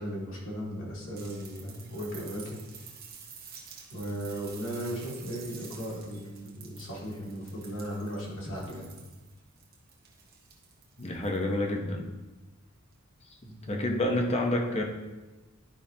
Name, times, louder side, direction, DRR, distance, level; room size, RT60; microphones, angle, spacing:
voice 1, 0.0-2.6 3.9-8.9 13.4-13.9, equal, 60° left, -4 dB, 2.1 m, -37 dB
sound 1, 1.2-11.5 12.9-13.0, right 6 dB, 45° right, 1.1 m, -50 dB
voice 2, 11.0-12.1 13.7-14.8, left 1 dB, 30° left, 1 dB, 0.9 m, -28 dB
11.0 x 5.3 x 2.8 m, 1.2 s
head